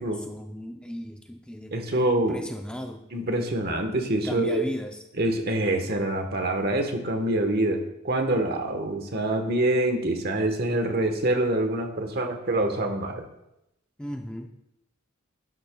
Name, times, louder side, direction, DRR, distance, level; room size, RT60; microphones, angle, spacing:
voice 1, 0.0-3.0 4.2-5.0 14.0-14.5, left 1 dB, 5° left, 3 dB, 0.5 m, -36 dB
voice 2, 1.7-2.4 3.1-4.6 5.2-13.3, right 1 dB, 50° right, 5 dB, 1.2 m, -25 dB
11.0 x 10.5 x 2.3 m, 0.84 s
head